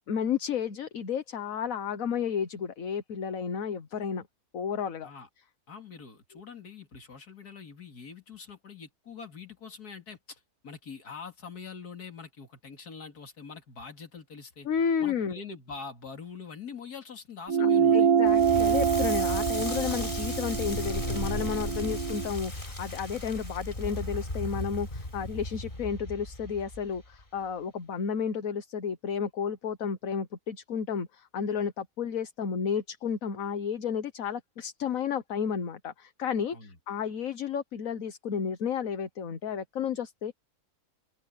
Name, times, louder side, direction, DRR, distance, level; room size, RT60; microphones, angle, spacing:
voice 1, 0.1-4.3 4.5-5.1 14.6-15.4 17.6-40.3, left 7 dB, 60° left, 1.6 m, -32 dB
voice 2, 5.7-14.7 15.0-18.1 36.5-36.8, left 5 dB, 90° left, 3.1 m, -44 dB
sound 1, 17.5-22.3, right 7 dB, 75° right, 2.0 m, -25 dB
Crackle, 18.3-27.2, left 1 dB, 35° left, 5.3 m, -35 dB
open air
omnidirectional pair, 1.6 m